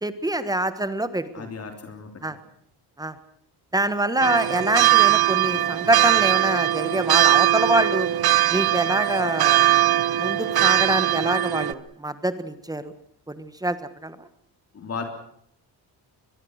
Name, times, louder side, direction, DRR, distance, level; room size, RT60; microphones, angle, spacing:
voice 1, 0.0-1.5 2.2-2.4 3.0-3.1 3.7-8.1 8.5-9.7 10.2-12.9 13.3-13.8 14.0-14.2, right 1 dB, 10° right, 12 dB, 1.4 m, -25 dB
voice 2, 1.3-2.1 14.7-15.0, left 5 dB, 40° left, 5 dB, 3.5 m, -34 dB
sound 1, 4.2-11.7, right 13 dB, 70° right, 1.0 m, -20 dB
23.5 x 22.0 x 6.5 m, 0.71 s
cardioid pair, 155°, 39 cm